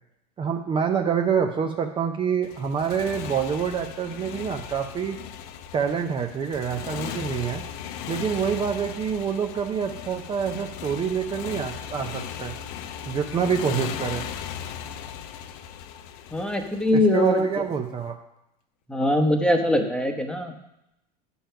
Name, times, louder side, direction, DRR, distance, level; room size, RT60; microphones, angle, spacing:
voice 1, 0.4-5.2 5.7-7.6 8.1-12.5 13.1-14.2 16.9-18.2, right 7 dB, 25° right, 4 dB, 0.6 m, -26 dB
Motorcycle, 2.4-17.6, left 9 dB, 65° left, 0.7 m, -37 dB
voice 2, 16.3-17.4 18.9-20.6, left 1 dB, 5° left, 5 dB, 1.0 m, -22 dB
8.8 x 5.5 x 5.7 m, 0.85 s
supercardioid pair, 120°, 21 cm